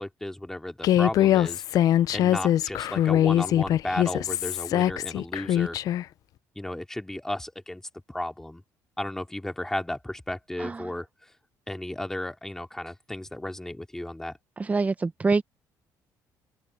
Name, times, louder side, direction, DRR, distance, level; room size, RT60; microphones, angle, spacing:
voice 1, 0.0-1.6 2.1-5.8 6.6-7.8 8.1-8.6 9.0-11.3 11.7-14.4, left 1 dB, 5° left, 2.5 m, -34 dB
Human voice, 0.8-6.0, left 12 dB, 60° left, 0.5 m, -23 dB
voice 2, 10.6-10.9 14.6-15.4, right 3 dB, 20° right, 0.8 m, -25 dB
open air
cardioid pair, 110°, 7 cm